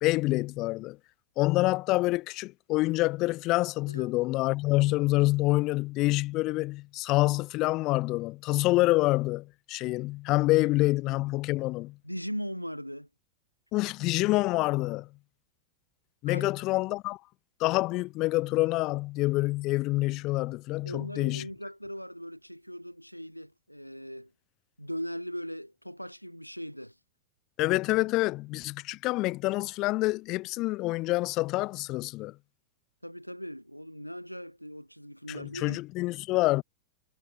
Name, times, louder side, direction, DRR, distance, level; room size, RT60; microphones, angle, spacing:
voice 1, 0.0-1.0 1.4-12.0 13.7-15.1 16.2-17.2 17.6-21.5 27.6-32.4 35.3-36.6, left 20 dB, 40° left, 0.3 m, -27 dB
voice 2, 12.0-13.1 16.3-16.5 20.8-24.3 24.8-27.0 33.0-35.8, equal, 90° left, 1.7 m, -39 dB
figure-of-eight pair, 90°, 0 cm